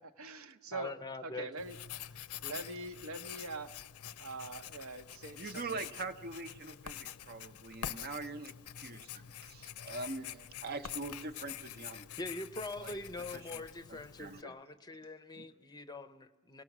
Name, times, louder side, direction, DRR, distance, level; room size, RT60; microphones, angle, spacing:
voice 1, 0.0-0.9 1.2-1.8 2.1-3.8 4.2-5.9 10.1-10.5, right 2 dB, 70° right, 7 dB, 1.0 m, -44 dB
voice 2, 0.7-1.5 12.2-16.6, left 2 dB, 20° left, 12 dB, 0.7 m, -43 dB
Writing, 1.6-14.4, left 10 dB, 85° left, 0.6 m, -46 dB
voice 3, 5.4-10.4 10.6-12.2 12.8-12.9 13.3-13.6 13.9-14.5 15.4-15.5, right 3 dB, 45° right, 11 dB, 0.9 m, -43 dB
29.0 x 18.5 x 6.1 m, 1.3 s
head